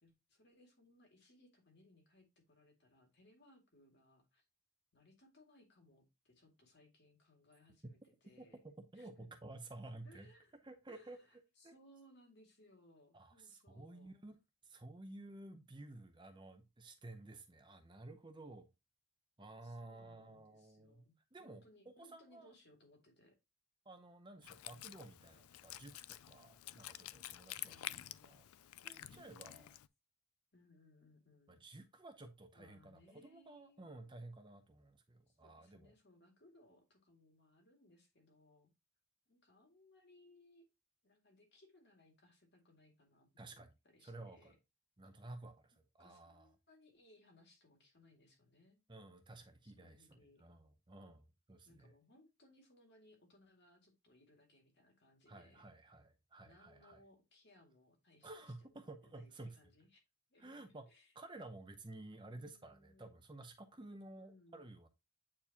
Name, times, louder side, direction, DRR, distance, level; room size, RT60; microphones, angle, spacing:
voice 1, 0.0-4.4 4.9-8.6 8.9-9.4 10.0-10.5 10.9-14.1 19.6-23.4 24.7-25.2 27.6-29.8 30.5-31.6 32.5-34.2 35.3-38.7 39.3-40.6 41.0-44.6 46.0-48.8 49.6-50.5 51.7-55.7 56.4-60.0 60.3-61.1 62.3-63.2 64.2-64.7, left 1 dB, 50° left, 2.2 m, -67 dB
voice 2, 8.9-10.3 10.6-11.2 11.6-11.7 13.1-14.4 14.6-18.7 19.4-21.0 21.3-22.5 23.8-27.8 28.2-28.4 28.8-29.7 31.5-35.9 43.4-43.7 44.0-44.5 45.0-46.5 48.9-51.9 55.3-57.0 58.2-59.6 60.4-60.9 61.1-64.9, right 2 dB, 20° right, 0.7 m, -53 dB
Wind instrument woodwind instrument, 24.4-29.9, left 14 dB, 80° left, 0.4 m, -50 dB
8.6 x 4.5 x 2.8 m
head